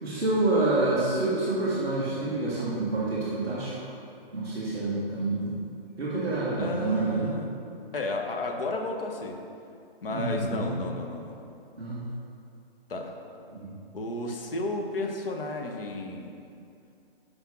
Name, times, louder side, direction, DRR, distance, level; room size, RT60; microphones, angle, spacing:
voice 1, 0.0-3.9 4.3-5.6 6.0-7.3 10.1-10.7 11.8-12.0 13.5-13.7, right 2 dB, 5° right, -13 dB, 0.4 m, -28 dB
voice 2, 6.6-7.6 7.9-9.4 10.0-11.4 12.9-13.2 13.9-16.4, left 2 dB, 65° left, 2 dB, 1.1 m, -33 dB
5.9 x 5.3 x 6.0 m, 2.5 s
hypercardioid pair, 150°, 30 cm